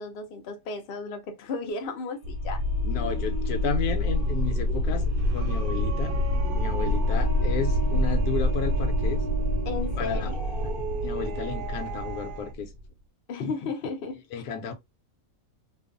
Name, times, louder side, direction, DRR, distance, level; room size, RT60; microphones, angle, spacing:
voice 1, 0.0-2.6 6.8-7.0 9.6-10.9 13.3-14.2, left 4 dB, 55° left, 0.6 m, -34 dB
sound 1, 2.0-12.5, right 3 dB, 60° right, 0.6 m, -38 dB
sound 2, 2.2-12.9, left 1 dB, 80° right, 1.0 m, -27 dB
voice 2, 2.8-5.0 5.3-6.1 6.5-9.2 10.0-10.3 11.0-12.7 14.3-14.7, left 6 dB, 90° left, 1.1 m, -32 dB
2.5 x 2.3 x 2.4 m
omnidirectional pair, 1.6 m